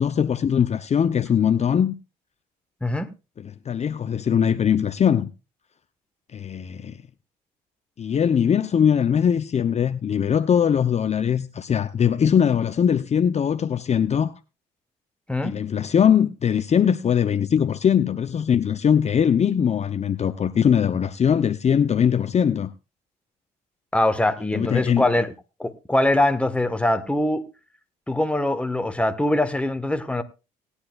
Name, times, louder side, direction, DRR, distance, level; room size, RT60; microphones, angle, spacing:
voice 1, 0.0-1.9 3.4-5.3 6.3-7.0 8.0-14.3 15.4-22.7 24.5-25.1, left 8 dB, 40° left, 0.7 m, -21 dB
voice 2, 23.9-25.3 25.6-27.5 28.1-30.2, left 1 dB, 5° left, 1.4 m, -22 dB
19.0 x 10.0 x 2.4 m
supercardioid pair, 70°, 18 cm